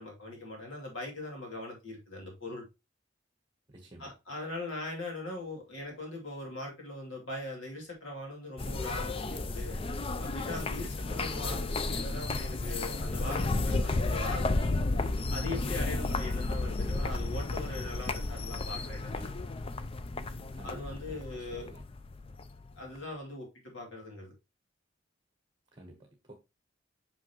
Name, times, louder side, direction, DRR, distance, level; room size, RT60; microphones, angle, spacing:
voice 1, 0.0-2.6 4.0-9.8 10.2-14.8 15.3-19.3 20.6-21.7 22.8-24.3, left 2 dB, 90° left, 2.7 m, -40 dB
voice 2, 3.7-4.1 20.5-21.9 25.7-26.3, right 1 dB, 25° right, 1.1 m, -51 dB
sound 1, 8.6-23.0, left 2 dB, 30° left, 0.4 m, -33 dB
5.9 x 5.6 x 2.9 m
head